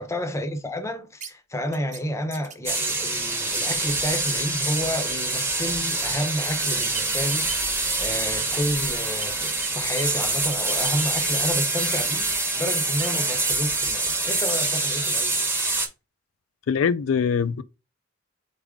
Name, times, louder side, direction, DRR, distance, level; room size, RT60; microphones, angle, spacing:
voice 1, 0.0-15.7, equal, 15° left, 0.6 m, -30 dB
sound 1, 1.2-1.3 1.7-2.0 2.3-4.3 4.7-5.2 5.5-5.9 6.6-8.7 9.0-10.2 10.5-12.0 12.3-13.7 14.0-14.1 14.5-14.7, right 6 dB, 40° right, 0.9 m, -38 dB
sound 2, 2.7-15.9, right 2 dB, 10° right, 0.9 m, -25 dB
voice 2, 16.7-17.6, left 6 dB, 80° left, 0.4 m, -22 dB
4.0 x 3.7 x 3.6 m
head